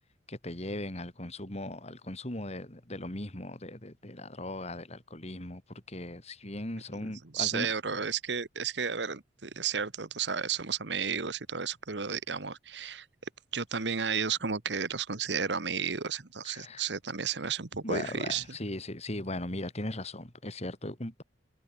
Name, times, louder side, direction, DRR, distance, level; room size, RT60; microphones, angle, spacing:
voice 1, 0.3-7.7 16.4-16.8 17.8-21.2, left 1 dB, 35° left, 3.4 m, -38 dB
voice 2, 7.3-13.1 13.5-18.6, right 6 dB, 70° right, 1.4 m, -33 dB
head